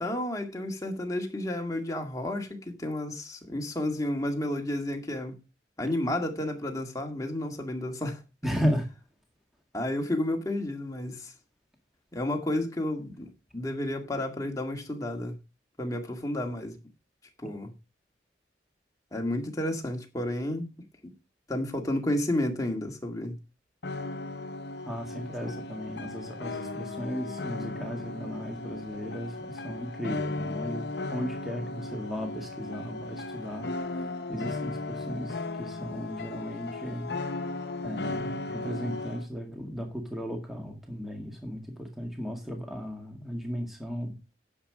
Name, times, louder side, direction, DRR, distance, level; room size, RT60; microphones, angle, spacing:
voice 1, 0.0-5.4 5.8-8.2 9.7-11.3 12.1-15.4 15.8-16.8 17.4-17.7 19.1-20.7 21.0-21.1 21.5-23.4 25.4-25.5, left 1 dB, 15° left, 2.0 m, -31 dB
voice 2, 8.4-8.9 24.9-30.8 31.1-37.1 37.8-44.3, equal, ahead, 1.9 m, -35 dB
sound 1, 23.8-39.3, left 2 dB, 55° left, 0.9 m, -36 dB
10.0 x 7.2 x 4.9 m
head